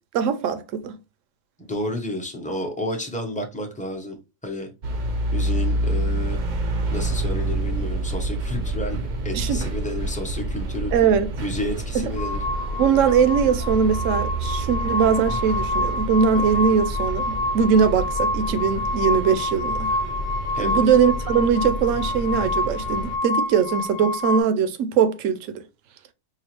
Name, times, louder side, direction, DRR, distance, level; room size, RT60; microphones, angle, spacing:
voice 1, 0.1-1.0 9.3-9.6 10.9-11.3 11.9-12.0 12.8-19.9 20.6-25.6, right 7 dB, 75° right, 0.9 m, -21 dB
voice 2, 1.6-4.2 4.4-4.7 5.3-6.4 6.9-11.0 11.4-12.4 20.5-20.9, left 1 dB, 10° left, 0.6 m, -31 dB
sound 1, 4.8-23.2, right 1 dB, 55° right, 0.5 m, -28 dB
sound 2, 12.2-24.4, left 2 dB, 85° left, 1.0 m, -27 dB
4.8 x 2.3 x 2.9 m
omnidirectional pair, 1.3 m